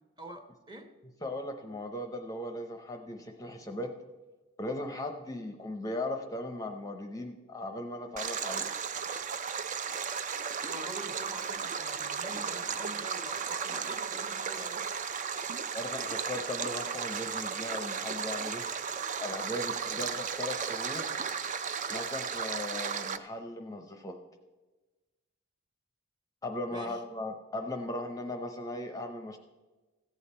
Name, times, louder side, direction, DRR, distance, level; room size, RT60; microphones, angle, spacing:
voice 1, 0.2-0.9 10.6-14.8 19.9-20.1 26.7-27.0, right 1 dB, 20° right, 5 dB, 1.0 m, -45 dB
voice 2, 1.2-3.9 4.6-8.7 15.7-18.6 19.2-21.1 21.9-24.2 26.4-29.4, left 1 dB, 15° left, 5 dB, 0.7 m, -38 dB
Stream, 8.2-23.2, right 6 dB, 35° right, 0.4 m, -35 dB
14.5 x 8.7 x 4.3 m, 1.2 s
head